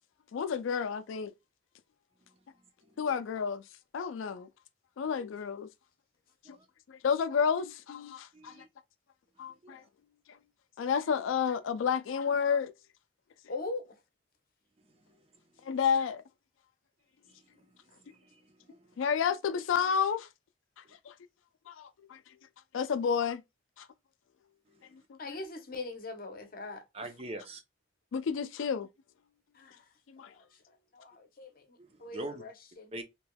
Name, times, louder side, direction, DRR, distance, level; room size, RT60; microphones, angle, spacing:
voice 1, 0.3-1.3 3.0-3.6 3.9-4.5 5.0-5.7 6.9-8.6 9.4-9.8 10.8-12.7 15.7-16.2 19.0-20.3 21.1-21.2 21.7-22.2 22.7-23.4 23.8-23.9 28.1-28.9 30.1-30.3, left 6 dB, 90° left, 0.4 m, -30 dB
voice 2, 8.3-8.7 9.5-9.8 14.8-14.9 15.4-15.5 17.3-17.7 18.0-18.8 26.9-27.6 31.8-32.4 32.9-33.0, right 1 dB, 30° right, 0.6 m, -44 dB
voice 3, 13.5-14.0 17.9-18.0 25.2-27.1 29.5-29.9 30.3-32.9, left 3 dB, 50° left, 0.8 m, -42 dB
3.3 x 2.9 x 2.2 m
head